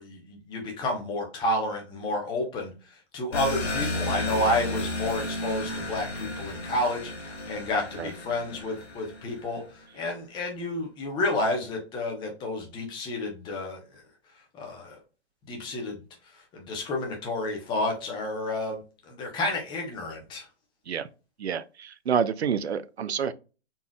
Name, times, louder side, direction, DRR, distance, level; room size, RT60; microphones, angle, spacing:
voice 1, 0.0-14.0 14.5-15.0 15.5-16.0 16.3-20.5, left 2 dB, 15° left, 0.9 m, -30 dB
sound 1, 3.3-9.6, left 2 dB, 70° left, 1.1 m, -33 dB
voice 2, 21.4-23.3, right 7 dB, 65° right, 0.5 m, -28 dB
4.1 x 3.5 x 2.2 m
figure-of-eight pair, 125°, 34 cm